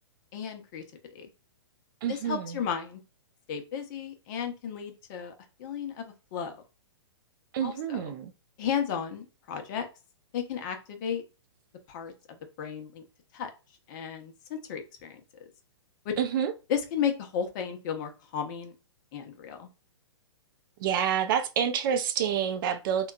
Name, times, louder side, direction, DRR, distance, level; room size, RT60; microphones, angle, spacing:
voice 1, 0.3-0.8 1.1-1.3 2.1-3.0 3.5-5.3 5.6-6.6 7.6-8.1 8.6-9.9 10.3-11.2 11.9-13.0 13.3-13.5 13.9-15.2 16.0-16.1 16.7-18.7 19.1-19.7, left 7 dB, 40° left, 0.7 m, -34 dB
voice 2, 2.0-2.6 7.5-8.3 16.2-16.5 20.8-23.1, right 8 dB, 45° right, 0.4 m, -28 dB
3.6 x 2.3 x 2.3 m
hypercardioid pair, 120°, 15 cm